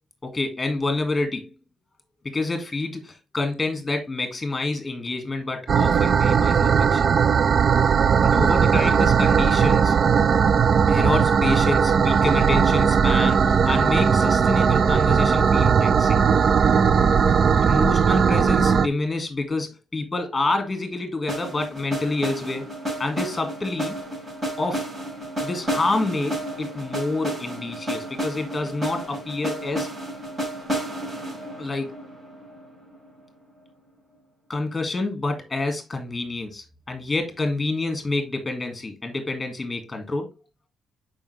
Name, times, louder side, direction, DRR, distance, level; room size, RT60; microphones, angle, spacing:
voice 1, 0.2-1.5 2.2-7.0 8.2-10.0 10.9-16.2 17.6-22.6 23.0-24.0 24.6-24.9 25.4-29.9 31.6-31.9 34.5-40.3, left 2 dB, 20° left, 2.0 m, -28 dB
sound 1, 5.7-18.9, right 6 dB, 50° right, 0.4 m, -18 dB
sound 2, 21.3-33.2, right 1 dB, 30° right, 5.1 m, -32 dB
7.1 x 5.2 x 3.3 m
cardioid pair, 90°, 0 cm